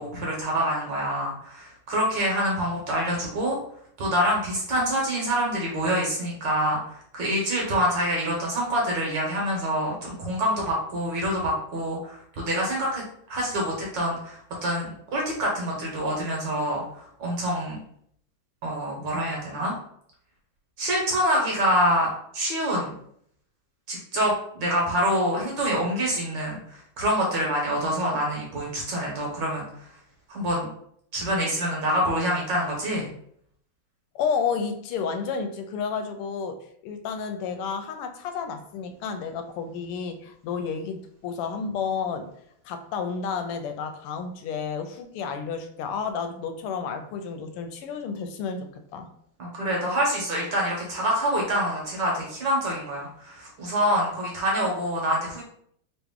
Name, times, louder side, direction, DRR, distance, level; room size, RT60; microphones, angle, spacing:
voice 1, 0.0-3.6 4.0-17.8 18.6-19.7 20.8-23.0 23.9-29.9 30.3-30.7 31.1-33.1 49.4-55.4, equal, 60° right, -2 dB, 1.5 m, -26 dB
voice 2, 34.1-42.4 42.6-49.1, left 6 dB, 90° left, 7 dB, 1.5 m, -31 dB
3.4 x 3.0 x 3.5 m, 0.67 s
omnidirectional pair, 2.4 m